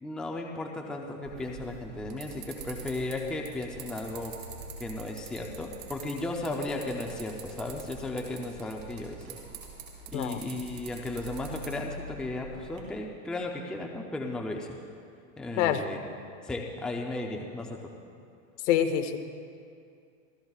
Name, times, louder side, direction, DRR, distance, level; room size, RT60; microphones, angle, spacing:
voice 1, 0.0-4.3 4.8-9.4 10.1-14.8 15.4-16.0 16.4-17.8, left 2 dB, ahead, 1 dB, 0.5 m, -35 dB
sound 1, 1.3-12.8, right 4 dB, 80° right, 4.5 m, -45 dB
voice 2, 18.6-19.2, left 10 dB, 60° left, 8 dB, 1.1 m, -26 dB
28.5 x 15.0 x 2.4 m, 2.4 s
supercardioid pair, 150°, 40 cm